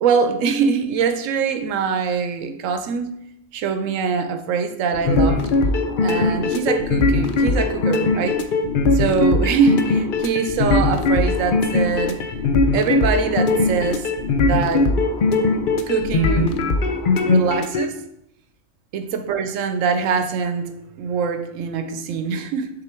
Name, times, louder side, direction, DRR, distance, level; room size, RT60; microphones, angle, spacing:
voice 1, 0.0-3.1 3.5-5.5 6.0-8.4 8.9-12.2 12.7-14.1 14.4-14.9 15.9-16.6 17.2-17.9 18.9-20.7 21.0-22.7, right 6 dB, 85° right, 8 dB, 1.0 m, -23 dB
sound 1, 4.9-17.8, left 3 dB, 55° left, 0.6 m, -20 dB
6.8 x 3.9 x 4.4 m, 0.79 s
omnidirectional pair, 1.3 m